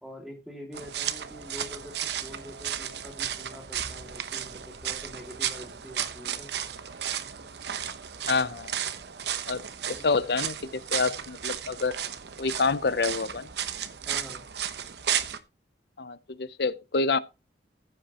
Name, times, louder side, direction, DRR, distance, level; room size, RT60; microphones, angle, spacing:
voice 1, 0.0-6.5 9.9-10.2 14.1-14.4, equal, ahead, 2.3 m, -45 dB
sound 1, 0.7-15.4, right 9 dB, 65° right, 0.9 m, -34 dB
voice 2, 8.3-8.7 9.5-12.0 12.4-13.5 16.0-17.2, left 4 dB, 60° left, 0.6 m, -27 dB
15.0 x 7.8 x 2.9 m
head